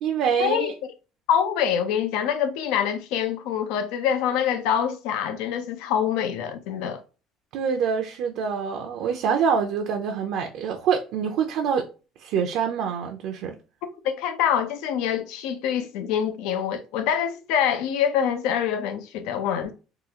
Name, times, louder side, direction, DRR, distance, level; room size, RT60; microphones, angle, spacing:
voice 1, 0.0-0.7 7.5-11.9 12.2-13.6, right 6 dB, 70° right, 0.5 m, -25 dB
voice 2, 1.3-7.0 14.0-19.7, left 8 dB, 85° left, 0.5 m, -25 dB
3.7 x 2.4 x 2.8 m
cardioid pair, 135°, 0 cm